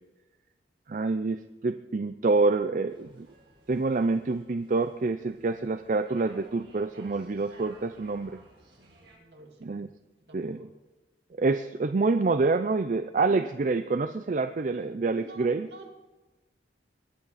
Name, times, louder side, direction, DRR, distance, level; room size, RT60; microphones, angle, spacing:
voice 1, 0.9-3.3 3.7-8.4 9.6-9.9 10.3-10.6 11.4-15.7, right 3 dB, 45° right, 10 dB, 0.4 m, -27 dB
sound 1, 2.9-9.2, right 2 dB, 85° right, 5.6 m, -56 dB
voice 2, 8.8-9.7 10.2-10.7 13.3-13.6 15.1-15.9, right 2 dB, 65° right, 2 dB, 2.5 m, -48 dB
21.5 x 8.7 x 4.1 m, 1.1 s
head